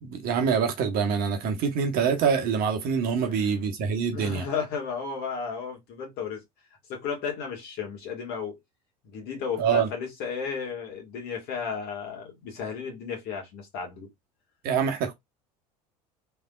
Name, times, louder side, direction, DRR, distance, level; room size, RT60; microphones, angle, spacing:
voice 1, 0.0-4.4 9.6-9.9 14.6-15.1, right 6 dB, 45° right, 1.1 m, -25 dB
voice 2, 3.2-3.5 4.1-6.4 6.9-8.6 9.0-14.1, left 6 dB, 50° left, 2.0 m, -34 dB
3.4 x 3.4 x 2.4 m
figure-of-eight pair, 70°, 21 cm